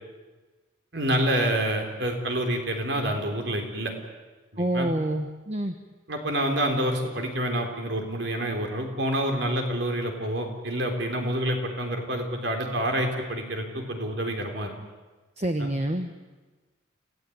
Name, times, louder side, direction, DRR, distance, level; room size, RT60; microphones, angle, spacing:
voice 1, 0.9-3.9 4.5-4.9 6.1-14.7 15.6-15.7, right 1 dB, 55° right, 4 dB, 3.9 m, -27 dB
voice 2, 4.6-5.8 15.4-16.1, right 1 dB, 30° right, 6 dB, 1.1 m, -27 dB
28.0 x 16.0 x 9.5 m, 1.3 s
head